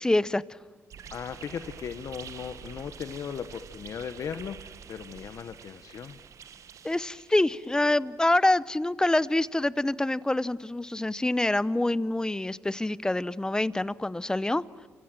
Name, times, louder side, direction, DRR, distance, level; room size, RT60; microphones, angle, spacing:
voice 1, 0.0-0.4 6.8-14.6, left 1 dB, 10° left, 18 dB, 0.8 m, -26 dB
sound 1, 0.9-7.9, right 7 dB, 60° right, 1.2 m, -47 dB
voice 2, 1.1-6.2, left 7 dB, 60° left, 10 dB, 1.1 m, -37 dB
29.0 x 25.5 x 7.7 m, 1.3 s
cardioid pair, 75°, 6 cm